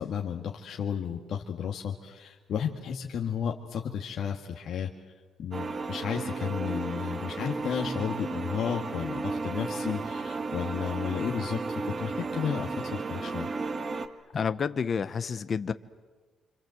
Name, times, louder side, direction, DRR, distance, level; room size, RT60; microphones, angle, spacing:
voice 1, 0.0-4.9 5.4-13.5, left 8 dB, 65° left, 1 dB, 1.9 m, -33 dB
sound 1, 5.5-14.1, right 3 dB, 35° right, 1.9 m, -34 dB
voice 2, 14.3-15.7, left 6 dB, 45° left, 11 dB, 1.0 m, -29 dB
27.0 x 26.0 x 7.9 m, 1.3 s
cardioid pair, 90°, 0 cm